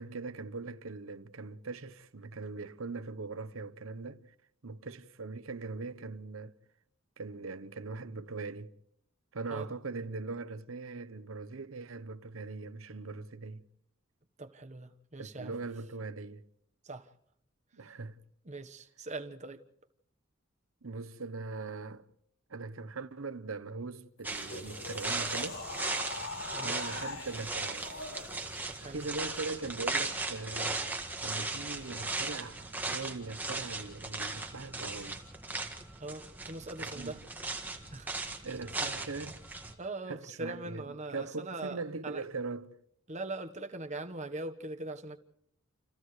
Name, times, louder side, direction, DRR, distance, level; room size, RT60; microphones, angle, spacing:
voice 1, 0.0-4.2 4.6-6.5 7.2-8.7 9.3-13.6 15.2-16.4 17.7-18.2 20.8-22.0 22.5-25.6 26.6-27.9 28.8-30.8 31.2-35.2 36.8-37.2 38.4-39.4 40.1-42.7, right 3 dB, 80° right, 0.9 m, -41 dB
voice 2, 14.4-15.6 16.8-17.1 18.4-19.6 26.4-26.7 28.7-29.0 36.0-37.2 37.9-38.1 39.8-42.2 43.1-45.2, right 2 dB, 35° right, 1.2 m, -41 dB
sound 1, 24.2-28.8, left 3 dB, 85° left, 5.1 m, -43 dB
sound 2, 24.2-39.7, right 3 dB, 10° right, 1.8 m, -37 dB
29.0 x 29.0 x 3.2 m
head